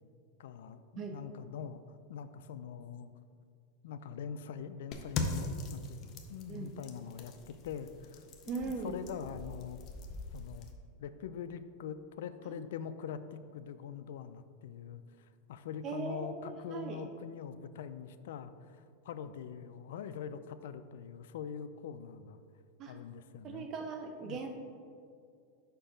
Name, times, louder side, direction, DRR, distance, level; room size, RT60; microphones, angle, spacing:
voice 1, 0.4-3.1 3.8-9.8 10.3-10.7 11.0-22.4 22.9-23.7 24.2-24.4, left 8 dB, 75° left, 11 dB, 0.4 m, -44 dB
sound 1, 4.9-10.7, left 3 dB, 35° left, 0.6 m, -41 dB
voice 2, 6.5-6.8 8.5-8.9 12.5-12.6 15.8-17.1 22.8-22.9 23.4-24.5, right 4 dB, 30° right, 4 dB, 0.4 m, -39 dB
5.5 x 4.5 x 5.0 m, 2.3 s
supercardioid pair, 155°, 0 cm